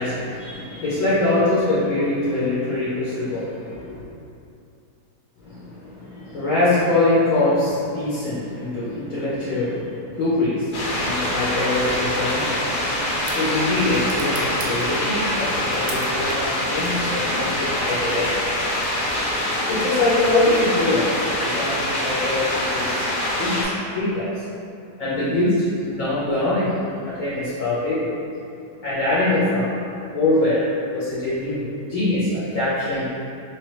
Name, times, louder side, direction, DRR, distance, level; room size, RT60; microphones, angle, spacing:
voice 1, 0.0-4.0 5.4-18.5 19.7-22.9 23.4-24.4 25.0-26.7 27.0-28.1 28.8-29.7 30.1-33.1, left 2 dB, 65° left, -10 dB, 1.0 m, -23 dB
sound 1, 10.7-23.6, left 1 dB, 90° left, 1.3 m, -24 dB
sound 2, 12.6-19.5, right 4 dB, 70° right, 0.8 m, -43 dB
3.2 x 3.2 x 3.0 m, 2.5 s
omnidirectional pair, 1.7 m